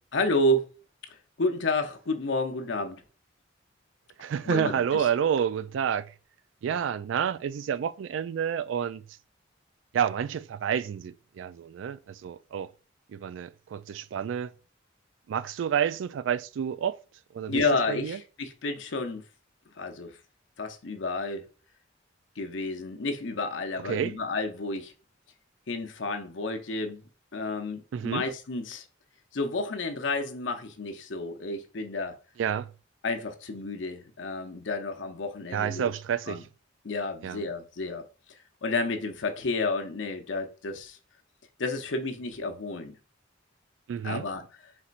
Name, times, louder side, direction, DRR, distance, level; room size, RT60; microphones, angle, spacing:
voice 1, 0.1-0.7 1.4-3.0 4.4-5.1 17.5-19.2 19.8-20.1 20.6-21.4 22.4-24.9 25.7-27.0 27.3-28.8 29.3-32.1 33.0-35.9 36.3-36.4 36.8-38.1 38.6-41.0 41.6-43.0 44.0-44.4, left 2 dB, 75° left, 0.7 m, -30 dB
voice 2, 4.2-6.1 6.6-9.0 9.9-12.7 13.1-14.5 15.3-17.0 17.3-17.6 17.9-18.2 23.8-24.2 27.9-28.2 32.4-32.7 35.5-36.5 37.2-37.4 43.9-44.2, right 8 dB, 75° right, 0.3 m, -29 dB
4.3 x 4.2 x 2.5 m
head